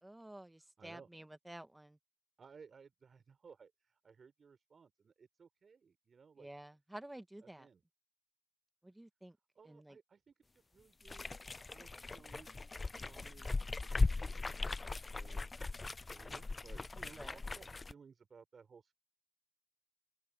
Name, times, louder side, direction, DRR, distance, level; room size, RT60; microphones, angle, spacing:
voice 1, 0.0-2.0 6.4-7.7 8.8-9.4 9.7-10.0 17.2-17.4, right 1 dB, 10° right, 1.9 m, -51 dB
voice 2, 0.8-1.1 2.4-6.5 7.4-7.8 9.5-11.3 11.6-15.4 15.7-18.9, right 5 dB, 40° right, 6.5 m, -60 dB
sound 1, 11.0-17.9, left 3 dB, 25° left, 0.4 m, -38 dB
open air
cardioid pair, 90°, 0 cm